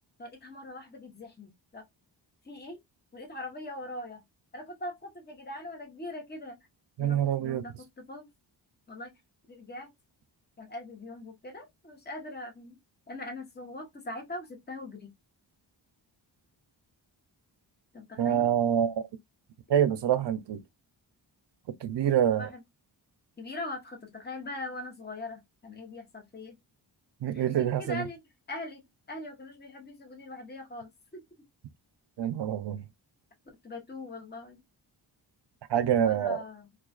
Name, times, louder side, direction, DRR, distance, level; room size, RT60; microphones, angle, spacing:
voice 1, 0.2-1.8 2.4-2.8 3.1-4.2 4.5-6.6 7.0-8.3 8.9-9.1 9.5-9.9 10.6-12.7 13.1-15.1 17.9-18.5 22.2-22.6 23.4-26.5 27.3-28.2 28.5-31.2 33.6-34.6 36.0-36.7, left 2 dB, 20° left, 0.9 m, -41 dB
voice 2, 7.0-7.6 18.2-19.0 19.7-20.6 21.8-22.5 27.2-28.1 32.2-32.8 35.7-36.4, right 9 dB, 65° right, 0.5 m, -26 dB
2.4 x 2.3 x 2.3 m
wide cardioid pair, 80°, 46 cm